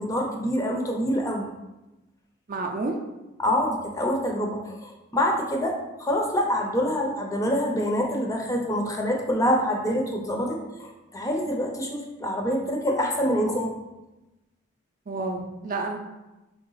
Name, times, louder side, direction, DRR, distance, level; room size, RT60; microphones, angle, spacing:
voice 1, 0.0-1.5 3.4-13.7, equal, 15° left, 1 dB, 0.5 m, -26 dB
voice 2, 2.5-3.0 15.1-16.0, right 3 dB, 40° right, 2 dB, 0.5 m, -29 dB
4.0 x 3.3 x 3.9 m, 1.0 s
head